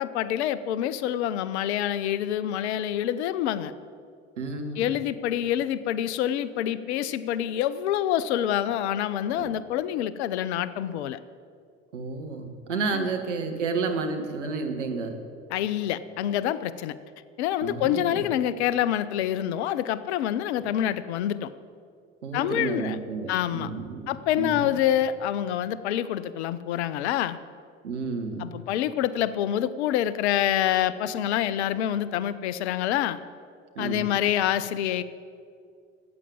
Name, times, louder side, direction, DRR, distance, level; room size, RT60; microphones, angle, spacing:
voice 1, 0.0-3.7 4.8-11.2 12.9-13.1 15.5-16.9 17.4-21.5 22.3-23.0 23.3-23.7 24.1-27.4 28.4-33.2 33.8-35.0, left 11 dB, 65° left, 16 dB, 0.7 m, -26 dB
voice 2, 4.4-4.9 9.3-9.5 11.9-15.2 17.6-18.3 22.2-24.7 27.8-28.6 33.7-34.2, right 4 dB, 80° right, 4 dB, 1.6 m, -31 dB
13.5 x 8.8 x 8.7 m, 2.3 s
figure-of-eight pair, 60°, 36 cm